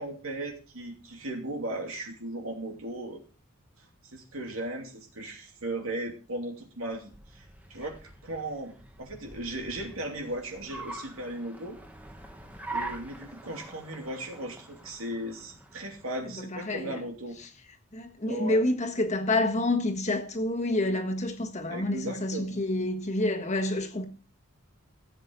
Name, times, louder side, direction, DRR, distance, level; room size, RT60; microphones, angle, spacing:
voice 1, 0.0-3.2 4.1-11.8 12.7-17.4 18.3-18.6 21.6-22.6, right 1 dB, 85° right, 2.8 m, -37 dB
Car, 6.8-16.3, right 2 dB, 5° right, 1.2 m, -44 dB
voice 2, 16.3-17.0 17.4-17.5 17.9-24.1, left 1 dB, 35° left, 1.5 m, -28 dB
15.0 x 7.8 x 4.0 m
head